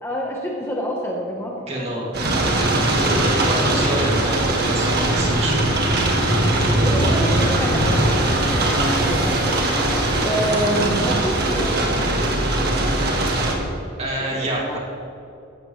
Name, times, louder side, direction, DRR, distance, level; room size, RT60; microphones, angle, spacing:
voice 1, 0.0-2.1 6.8-8.8 9.1-9.4 9.7-12.7 14.2-14.4 14.6-14.8, equal, 10° left, -2 dB, 1.1 m, -28 dB
voice 2, 1.7-2.6 3.4-5.7 14.0-14.8, right 1 dB, 30° right, -3 dB, 2.5 m, -27 dB
sound 1, 2.1-13.5, right 1 dB, 50° right, 1.8 m, -20 dB
sound 2, 7.1-13.1, equal, 5° right, 2.5 m, -31 dB
16.5 x 12.5 x 3.3 m, 2.8 s
head